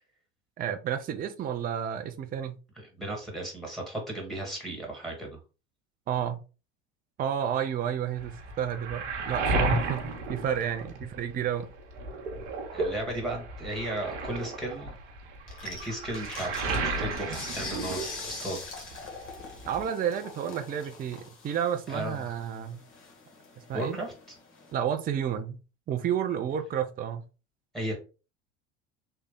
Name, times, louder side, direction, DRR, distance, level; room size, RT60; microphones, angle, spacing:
voice 1, 0.6-2.6 6.1-6.4 7.2-11.7 19.7-22.8 23.7-24.0 24.7-25.6 25.9-27.2, right 9 dB, 25° right, 0.5 m, -31 dB
voice 2, 3.0-5.4 12.7-15.0 15.6-18.8 21.9-22.3 23.7-24.1 27.7-27.9, right 1 dB, ahead, 1.7 m, -35 dB
Waves surf, 8.2-11.4 11.7-18.7 18.9-19.9, right 2 dB, 75° right, 1.0 m, -33 dB
sound 1, 15.5-24.7, left 3 dB, 35° left, 1.3 m, -43 dB
3.3 x 2.2 x 3.7 m
hypercardioid pair, 75°, 35 cm